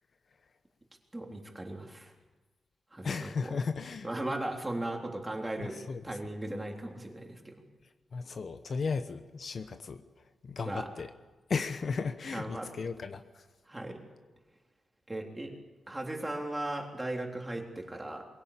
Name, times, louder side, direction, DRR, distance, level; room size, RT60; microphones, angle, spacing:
voice 1, 1.1-2.1 2.9-3.6 4.0-7.5 10.6-10.9 12.3-12.7 13.7-14.0 15.1-15.5 15.9-18.3, right 1 dB, 15° right, 1 dB, 3.5 m, -37 dB
voice 2, 3.0-4.1 5.6-6.0 8.1-10.0 10.4-11.1 11.5-13.4, left 5 dB, 50° left, 9 dB, 1.0 m, -35 dB
23.0 x 17.0 x 8.6 m, 1.2 s
wide cardioid pair, 110°, 0 cm